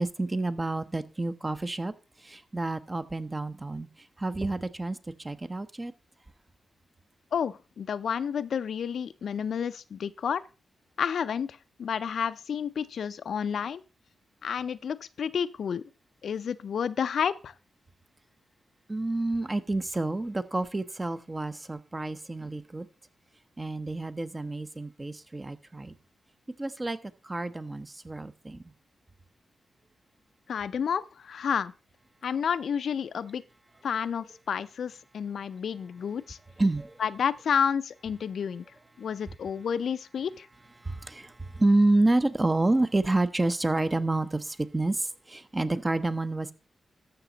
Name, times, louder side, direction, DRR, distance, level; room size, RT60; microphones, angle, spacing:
voice 1, 0.0-1.9 2.2-3.9 4.2-5.9 18.9-22.9 23.6-26.0 26.6-27.0 27.2-28.6 36.6-37.0 40.8-46.5, right 2 dB, 20° right, 0.7 m, -28 dB
voice 2, 7.3-10.4 11.0-11.5 11.8-13.8 14.4-15.8 16.2-17.5 30.5-31.7 32.2-33.4 33.8-36.4 37.0-38.6 39.0-40.5, left 7 dB, 75° left, 0.5 m, -30 dB
13.5 x 5.9 x 3.9 m
cardioid pair, 85°, 0 cm